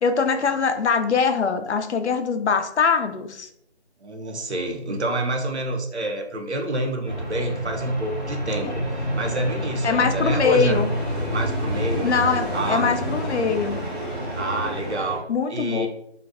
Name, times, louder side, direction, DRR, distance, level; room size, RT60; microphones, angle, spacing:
voice 1, 0.0-3.5 8.7-8.8 9.8-10.9 12.0-13.8 15.3-15.9, left 5 dB, 80° left, 7 dB, 0.5 m, -22 dB
voice 2, 4.0-10.9 11.3-12.1 12.5-12.9 14.3-15.9, right 2 dB, 75° right, 2 dB, 0.6 m, -28 dB
sound 1, 7.0-15.2, equal, ahead, 0.6 m, -28 dB
2.5 x 2.1 x 2.4 m, 0.73 s
figure-of-eight pair, 180°, 34 cm